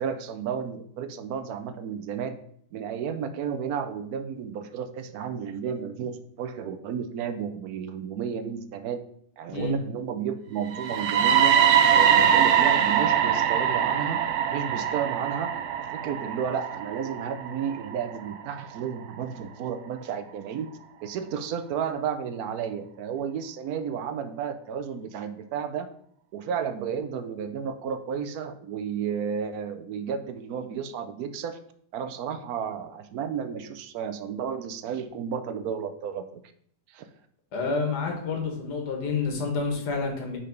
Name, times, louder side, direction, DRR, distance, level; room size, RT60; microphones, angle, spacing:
voice 1, 0.0-2.4 2.7-9.0 9.4-11.5 11.9-14.2 14.5-15.6 15.9-20.7 21.0-25.9 26.3-31.6 31.9-36.4 36.9-37.0, right 7 dB, 70° right, 9 dB, 1.0 m, -32 dB
sound 1, 10.7-18.6, right 8 dB, 85° right, 0.6 m, -23 dB
voice 2, 37.5-40.4, left 4 dB, 65° left, 2 dB, 1.9 m, -29 dB
5.0 x 4.3 x 5.2 m, 0.64 s
omnidirectional pair, 1.9 m